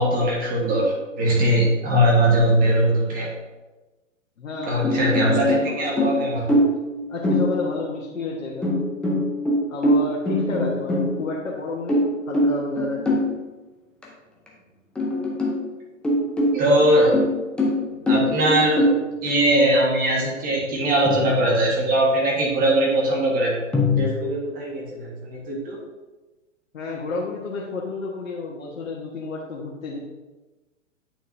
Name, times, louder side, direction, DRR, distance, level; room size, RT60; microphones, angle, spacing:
voice 1, 0.0-3.3 4.7-6.4 16.5-17.2 18.1-18.9 19.2-23.6 24.0-25.8, right 1 dB, 20° right, -2 dB, 1.5 m, -20 dB
voice 2, 4.4-6.7 7.1-8.8 9.7-13.1 26.7-30.0, left 3 dB, 75° left, -3 dB, 1.4 m, -31 dB
sound 1, 4.5-5.7 6.0-6.9 7.2-7.9 8.6-11.4 11.9-13.3 14.0-14.1 14.5-14.6 14.9-15.6 16.0-19.1 21.0-21.8 23.7-24.0, left 1 dB, 5° left, 0.4 m, -23 dB
8.8 x 5.3 x 2.7 m, 1.1 s
hypercardioid pair, 120°, 39 cm